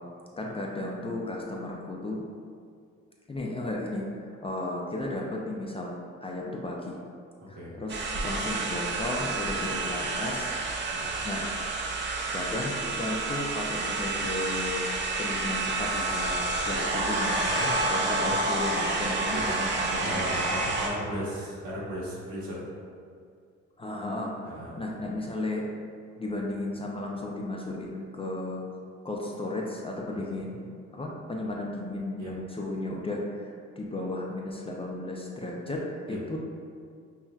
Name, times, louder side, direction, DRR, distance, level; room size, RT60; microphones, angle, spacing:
voice 1, 0.4-2.3 3.3-7.0 7.5-10.6 11.2-11.5 12.3-14.8 15.2-17.5 17.9-20.1 23.8-24.3 24.8-25.6 26.2-28.6 29.0-36.4, left 2 dB, 20° left, -2 dB, 0.4 m, -34 dB
voice 2, 7.4-7.8 10.9-11.2 17.4-17.8 18.1-18.3 19.3-19.5 20.0-22.6 24.4-24.7 30.1-30.5 32.2-32.3 36.1-36.2, equal, 75° right, -7 dB, 1.2 m, -37 dB
sound 1, 7.9-20.9, right 2 dB, 40° right, 0.6 m, -29 dB
5.4 x 2.1 x 2.3 m, 2.2 s
cardioid pair, 90°, 30 cm